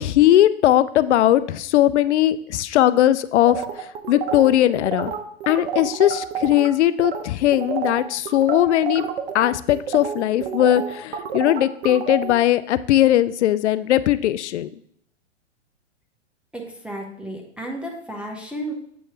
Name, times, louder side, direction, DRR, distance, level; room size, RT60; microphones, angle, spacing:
voice 1, 0.0-3.6 4.1-5.1 5.5-9.0 9.3-14.7, left 13 dB, 65° left, 15 dB, 0.5 m, -19 dB
sound 1, 3.5-6.7 7.0-7.2 7.5-12.3, right 7 dB, 55° right, 1.0 m, -29 dB
voice 2, 16.5-18.7, right 1 dB, 5° right, 0 dB, 0.9 m, -33 dB
8.0 x 3.2 x 4.4 m, 0.68 s
hypercardioid pair, 125°, 37 cm